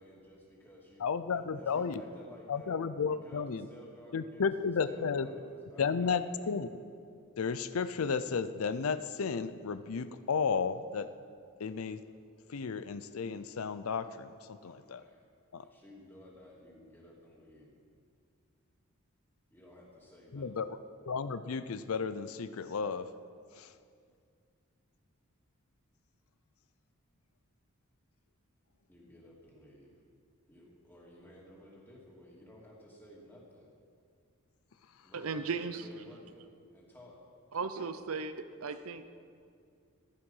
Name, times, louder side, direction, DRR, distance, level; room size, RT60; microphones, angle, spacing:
voice 1, 0.0-2.8 3.0-6.6 14.5-15.2 15.6-17.8 19.5-20.7 28.9-30.0 30.5-33.7 35.0-36.4 36.7-37.2, left 1 dB, 10° left, -4 dB, 2.6 m, -54 dB
voice 2, 1.0-2.0 2.5-3.7 4.1-5.3 5.8-6.7 7.4-11.1 11.6-12.0 12.5-15.0 15.5-15.6 20.3-20.7 21.1-23.1 23.5-23.7, left 5 dB, 85° left, 12 dB, 0.5 m, -33 dB
voice 3, 35.1-35.8 37.5-38.3 38.6-39.0, right 5 dB, 85° right, 11 dB, 0.7 m, -36 dB
14.5 x 11.5 x 5.5 m, 2.3 s
head